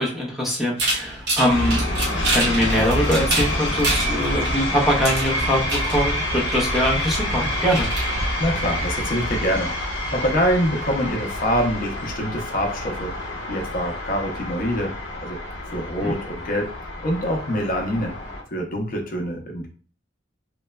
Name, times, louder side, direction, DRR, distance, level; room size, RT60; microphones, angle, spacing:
voice 1, 0.0-1.8 2.3-7.9 16.0-16.1, equal, ahead, -4 dB, 0.6 m, -22 dB
sound 1, 0.8-9.0, right 2 dB, 65° right, 0.8 m, -28 dB
sound 2, 1.5-18.4, left 1 dB, 85° left, 0.7 m, -27 dB
voice 2, 8.4-9.7 10.1-13.1 13.5-14.9 15.2-15.4 15.7-16.7 17.0-18.1 18.5-19.7, equal, 50° left, 1 dB, 0.5 m, -25 dB
3.0 x 2.1 x 2.2 m, 0.40 s
head